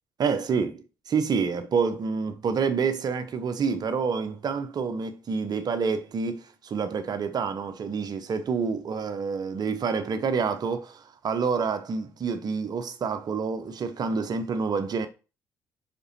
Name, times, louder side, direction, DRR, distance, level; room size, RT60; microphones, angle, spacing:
voice 1, 0.2-15.1, right 5 dB, 45° right, 1.0 m, -28 dB
5.4 x 5.3 x 4.3 m
figure-of-eight pair, 45°, 9 cm